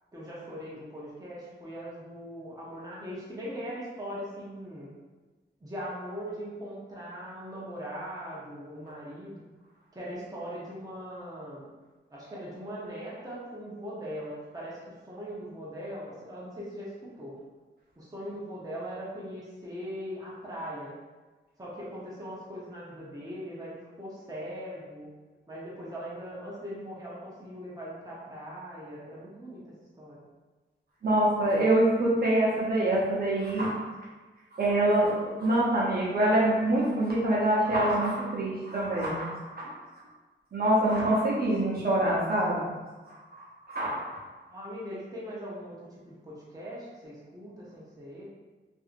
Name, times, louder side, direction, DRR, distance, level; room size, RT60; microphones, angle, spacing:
voice 1, 0.1-4.9 5.6-9.4 9.9-11.7 12.1-17.4 18.0-20.9 21.6-25.1 25.5-30.2 44.5-45.8 46.1-48.3, equal, 20° right, -7 dB, 0.7 m, -40 dB
voice 2, 31.0-33.8 34.5-39.7 40.5-42.6 43.1-44.2, right 1 dB, 50° right, -6 dB, 0.8 m, -25 dB
2.7 x 2.6 x 2.5 m, 1.3 s
wide cardioid pair, 90°, 20 cm